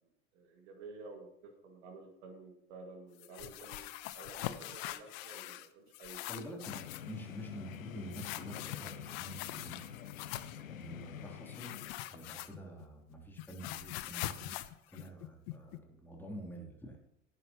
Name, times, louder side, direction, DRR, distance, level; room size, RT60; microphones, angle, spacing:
voice 1, 0.3-6.5, right 3 dB, 60° right, 4 dB, 2.1 m, -52 dB
sound 1, 3.2-5.7 5.9-7.1 8.1-10.6 11.5-12.8 13.1-15.8, left 15 dB, 50° left, 0.8 m, -43 dB
voice 2, 6.3-10.0 10.3-11.8 12.0-17.0, equal, 5° left, 0 dB, 3.0 m, -48 dB
sound 2, 6.7-11.9, left 9 dB, 80° left, 0.7 m, -47 dB
17.0 x 9.8 x 3.0 m, 0.79 s
figure-of-eight pair, 75°, 40 cm